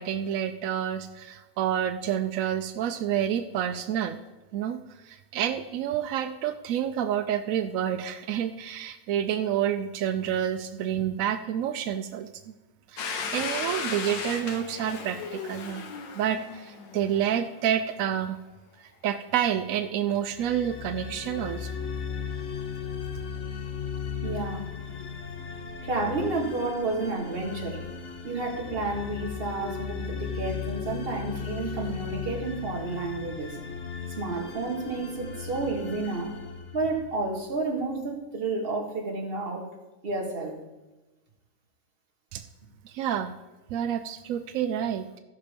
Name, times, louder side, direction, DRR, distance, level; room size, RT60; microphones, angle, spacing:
voice 1, 0.0-4.2 4.5-12.3 12.9-15.8 16.1-18.4 19.0-21.7 42.3-42.4 42.8-43.3 43.7-45.0, right 10 dB, 80° right, 9 dB, 0.7 m, -29 dB
Domestic sounds home sounds, 13.0-17.6, left 5 dB, 80° left, 1.7 m, -36 dB
sound 1, 20.3-37.4, left 6 dB, 45° left, 1.2 m, -36 dB
voice 2, 24.2-24.7 25.8-27.8 28.2-33.6 34.2-36.3 36.7-39.7 40.0-40.6, right 3 dB, 30° right, -1 dB, 1.7 m, -31 dB
14.0 x 5.8 x 5.1 m, 1.1 s
omnidirectional pair, 2.0 m